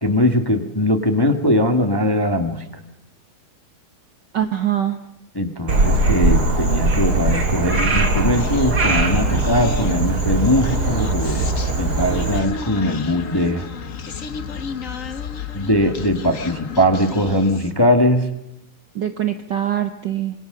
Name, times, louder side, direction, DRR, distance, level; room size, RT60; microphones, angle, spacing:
voice 1, 0.0-2.6 5.3-13.7 15.5-18.3, left 1 dB, 15° left, 6 dB, 0.8 m, -20 dB
voice 2, 4.3-5.0 18.9-20.3, right 11 dB, 90° right, 8 dB, 0.9 m, -23 dB
Frog, 5.7-12.4, right 2 dB, 30° right, 3.1 m, -20 dB
Human voice, 8.3-17.8, left 5 dB, 70° left, 0.7 m, -32 dB
26.5 x 22.0 x 6.7 m, 0.85 s
omnidirectional pair, 3.5 m